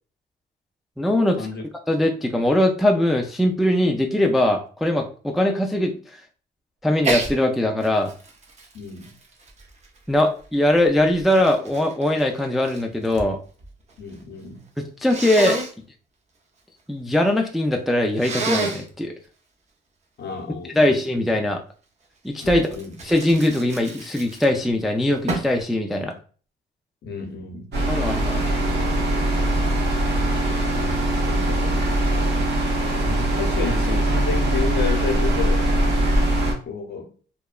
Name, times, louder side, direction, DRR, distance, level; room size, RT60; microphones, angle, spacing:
voice 1, 1.0-1.4 1.9-6.0 6.8-8.1 10.1-13.4 14.8-15.6 16.9-19.1 20.7-21.6 22.2-22.7 23.0-26.1 27.9-28.7, left 1 dB, ahead, 0.3 m, -21 dB
Sneeze, 7.0-7.3 7.8-10.2 10.9-13.3 13.6-14.2 15.1-15.7 18.2-18.9 22.4-24.7 25.3-25.6, right 3 dB, 35° right, 0.6 m, -29 dB
voice 2, 8.7-9.1 14.0-14.6 20.2-21.2 22.4-22.9 27.0-27.7 30.8-31.9 33.0-35.6 36.7-37.1, left 5 dB, 60° left, 0.7 m, -31 dB
sound 1, 27.7-36.5, right 1 dB, 60° right, 1.0 m, -21 dB
2.8 x 2.2 x 2.3 m
cardioid pair, 90°, 20 cm